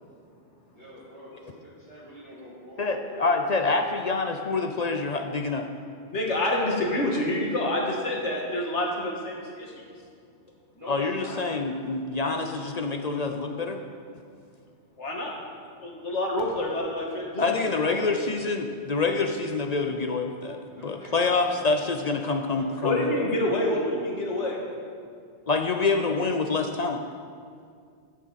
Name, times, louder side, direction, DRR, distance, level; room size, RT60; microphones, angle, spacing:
voice 1, 0.7-3.2 10.7-11.5 20.8-21.6 22.1-22.8, equal, 25° left, -12 dB, 2.4 m, -45 dB
voice 2, 2.8-5.7 10.9-13.8 17.4-20.6 20.8-23.1 25.5-27.0, left 3 dB, 50° left, 5 dB, 0.5 m, -26 dB
voice 3, 6.1-9.8 15.0-15.3 15.8-17.4 17.8-18.0 22.8-24.6, left 1 dB, 75° left, -1 dB, 2.0 m, -27 dB
13.0 x 9.0 x 4.1 m, 2.2 s
omnidirectional pair, 1.2 m